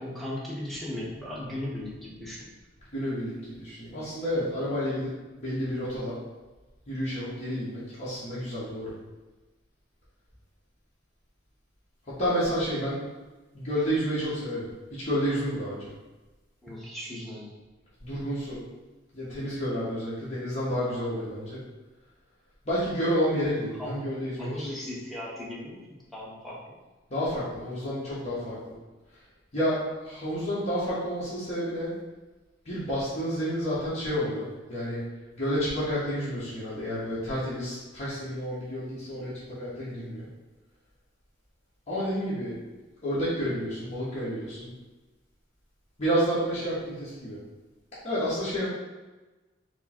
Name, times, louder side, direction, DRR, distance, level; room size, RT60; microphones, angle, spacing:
voice 1, 0.0-2.5 16.6-17.5 23.5-24.1 24.4-25.8 26.1-26.8, left 1 dB, ahead, -6 dB, 1.0 m, -37 dB
voice 2, 2.9-5.1 5.4-6.2 6.9-8.9 12.0-13.0 13.5-14.6 14.9-15.9 18.0-18.6 19.1-21.6 22.6-24.7 27.1-28.6 29.1-29.2 29.5-32.0 32.6-35.0 35.3-40.3 41.9-42.6 43.0-44.7 46.0-47.4 48.0-48.7, equal, 35° left, -10 dB, 1.2 m, -30 dB
4.9 x 2.1 x 4.3 m, 1.2 s
head